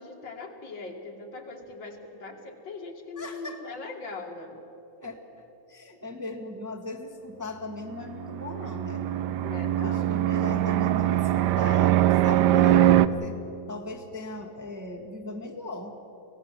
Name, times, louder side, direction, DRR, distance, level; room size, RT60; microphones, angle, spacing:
voice 1, 0.0-4.6 9.4-10.1, left 3 dB, 70° left, 2 dB, 2.8 m, -40 dB
voice 2, 3.1-3.8 5.0-9.1 9.7-13.4 13.7-16.0, left 2 dB, 10° right, 1 dB, 1.4 m, -38 dB
Fixed-wing aircraft airplane, 8.1-13.1, right 13 dB, 70° right, 1.1 m, -22 dB
25.5 x 17.5 x 7.5 m, 3.0 s
omnidirectional pair, 2.1 m